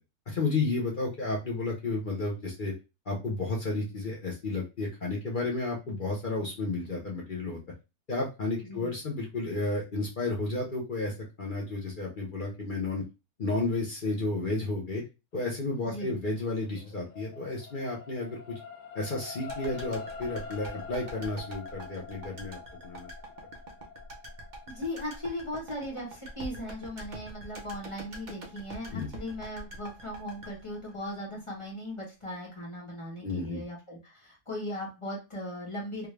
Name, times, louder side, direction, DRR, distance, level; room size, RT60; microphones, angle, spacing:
voice 1, 0.3-2.7 3.1-7.6 8.1-13.0 13.4-15.0 15.3-18.6 18.9-23.1 28.9-29.1 33.2-33.6, left 2 dB, 50° left, -2 dB, 0.6 m, -32 dB
voice 2, 15.9-16.2 24.7-36.1, left 1 dB, 20° left, -3 dB, 0.9 m, -38 dB
sound 1, 16.3-28.8 29.4-29.5, left 5 dB, 80° left, 1.2 m, -46 dB
sound 2, 19.5-31.7 31.9-32.0, right 1 dB, 45° right, 0.6 m, -45 dB
3.5 x 2.3 x 3.2 m, 0.27 s
omnidirectional pair, 1.8 m